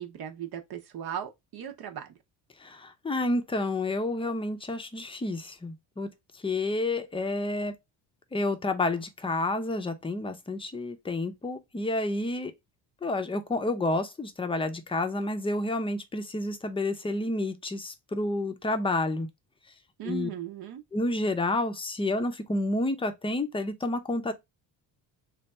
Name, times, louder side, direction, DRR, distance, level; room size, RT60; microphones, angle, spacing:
voice 1, 0.0-2.1 20.0-20.8, right 9 dB, 60° right, 0.8 m, -37 dB
voice 2, 2.6-6.1 6.4-7.7 8.3-12.5 13.0-19.3 20.1-20.3 20.9-24.3, left 2 dB, 15° left, 0.6 m, -29 dB
3.3 x 2.4 x 4.1 m
cardioid pair, 125°, 42 cm